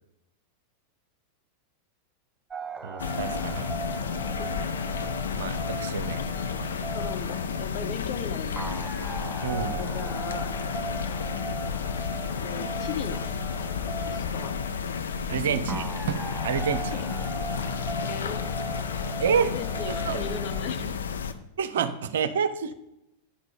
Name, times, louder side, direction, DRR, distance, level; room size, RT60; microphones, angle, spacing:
sound 1, 2.5-20.6, right 4 dB, 10° right, 0.4 m, -39 dB
voice 1, 2.8-3.7 5.3-6.2 6.8-7.0 9.4-9.8 12.5-12.7 15.3-17.0 19.2-19.5 20.1-20.2 21.6-22.7, right 7 dB, 60° right, 11 dB, 0.6 m, -28 dB
sound 2, 3.0-21.3, left 6 dB, 70° left, 0.6 m, -31 dB
voice 2, 6.9-8.7 9.5-10.5 12.4-13.2 14.1-14.5 18.0-18.6 19.3-21.0, left 6 dB, 45° left, 7 dB, 0.8 m, -37 dB
10.0 x 5.9 x 4.9 m, 0.87 s
figure-of-eight pair, 90°, 0 cm